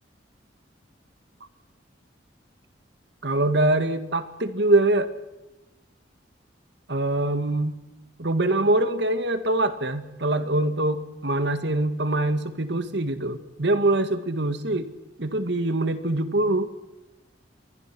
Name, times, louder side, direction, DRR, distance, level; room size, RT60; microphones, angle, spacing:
voice 1, 3.2-5.1 6.9-7.7 8.2-14.9 15.2-16.7, right 2 dB, 70° right, 10 dB, 1.9 m, -24 dB
27.5 x 23.0 x 6.1 m, 0.99 s
head